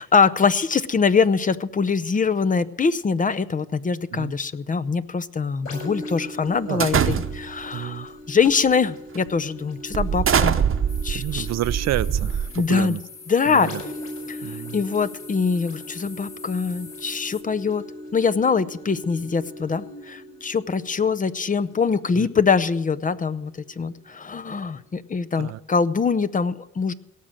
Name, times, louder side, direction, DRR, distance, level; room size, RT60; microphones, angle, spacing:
voice 1, 0.0-10.6 11.0-11.5 12.5-13.0 13.3-13.7 14.3-17.8 18.1-26.9, left 5 dB, 25° left, 13 dB, 0.6 m, -23 dB
sound 1, 5.6-23.2 23.7-23.8, left 1 dB, 50° left, 7.4 m, -40 dB
sound 2, 6.8-7.6 8.4-8.7 9.1-9.3 9.9-12.8, right 8 dB, 45° right, 0.9 m, -23 dB
voice 2, 7.7-8.1 11.1-13.0 13.5-13.8 14.4-14.8 22.2-22.3 25.4-25.6, right 14 dB, 60° right, 17 dB, 0.5 m, -29 dB
sound 3, 10.9-17.4, left 5 dB, 70° left, 1.4 m, -44 dB
17.5 x 6.3 x 8.8 m, 0.85 s
cardioid pair, 90°, 30 cm